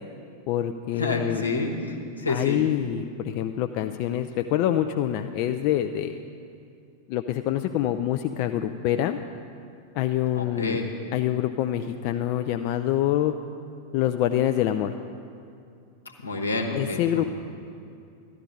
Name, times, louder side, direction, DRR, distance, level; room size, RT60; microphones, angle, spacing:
voice 1, 0.5-1.4 2.3-6.2 7.1-9.2 9.9-10.8 11.1-13.3 13.9-14.9 16.7-17.3, left 12 dB, 45° left, 7 dB, 0.3 m, -26 dB
voice 2, 1.0-2.6 10.4-10.9 16.2-17.3, left 3 dB, 80° left, 2 dB, 1.1 m, -28 dB
13.5 x 10.5 x 3.8 m, 2.5 s
figure-of-eight pair, 90°, 0 cm